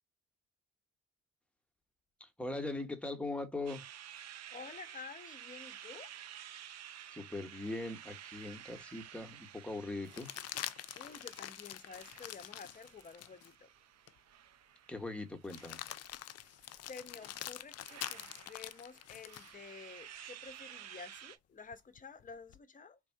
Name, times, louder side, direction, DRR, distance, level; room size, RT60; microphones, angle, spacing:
voice 1, 2.2-3.8 7.1-10.3 14.9-15.8, left 2 dB, 5° left, 1.1 m, -40 dB
sound 1, 3.7-21.4, right 10 dB, 60° right, 0.6 m, -53 dB
voice 2, 4.5-6.1 11.0-13.7 16.7-23.0, left 5 dB, 25° left, 0.8 m, -51 dB
sound 2, 8.5-8.6 10.1-13.5 14.1-14.2 15.4-19.5 21.7-22.6, left 13 dB, 55° left, 0.4 m, -46 dB
3.5 x 2.5 x 4.4 m
cardioid pair, 90°, 30 cm